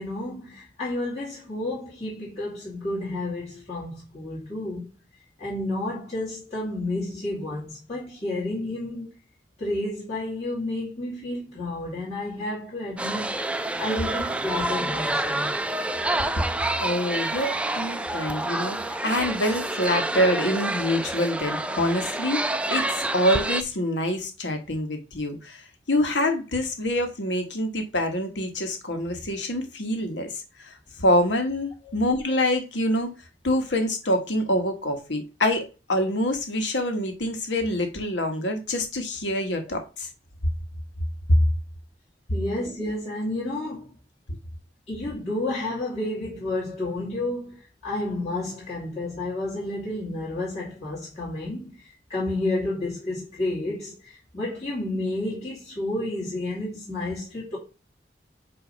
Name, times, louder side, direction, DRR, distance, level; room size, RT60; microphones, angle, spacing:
voice 1, 0.0-4.9 5.4-9.1 9.6-15.6 31.9-32.0 42.3-43.9 44.9-57.6, left 2 dB, 40° left, 2.7 m, -31 dB
sound 1, 13.0-23.6, right 2 dB, 5° right, 0.4 m, -28 dB
voice 2, 16.8-33.1 33.4-40.1, left 1 dB, 90° left, 1.4 m, -26 dB
8.0 x 2.8 x 5.1 m
head